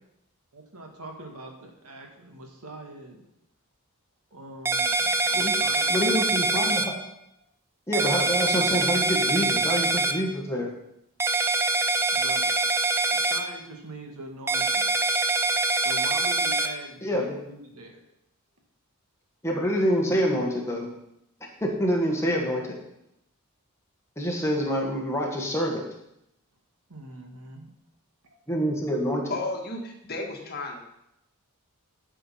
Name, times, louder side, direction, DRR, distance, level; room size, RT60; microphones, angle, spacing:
voice 1, 0.5-3.2 4.3-6.2 6.6-6.8 12.1-12.7 13.1-14.9 15.8-18.0 26.9-27.7, right 1 dB, 85° right, 2 dB, 1.9 m, -42 dB
sound 1, 4.7-6.9 7.9-10.1 11.2-13.4 14.5-16.7, right 3 dB, 10° right, 0.6 m, -24 dB
voice 2, 5.9-7.0 7.9-10.7 17.0-17.4 19.4-20.9 21.6-22.7 24.2-25.8 28.5-29.3, equal, 10° left, -1 dB, 1.7 m, -26 dB
voice 3, 29.3-30.8, left 2 dB, 45° left, 1 dB, 1.7 m, -33 dB
11.5 x 5.7 x 5.8 m, 0.81 s
head